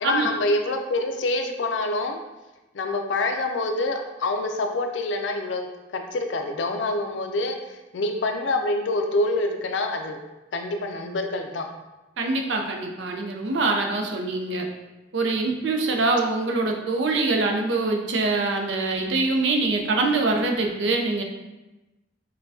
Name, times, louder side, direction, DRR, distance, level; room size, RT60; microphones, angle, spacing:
voice 1, 0.0-2.2 2.7-10.2 10.5-11.7, left 2 dB, 80° left, 5 dB, 0.4 m, -26 dB
voice 2, 12.2-14.7 15.1-21.2, right 3 dB, 70° right, 2 dB, 0.5 m, -24 dB
5.4 x 2.2 x 2.6 m, 1.1 s
head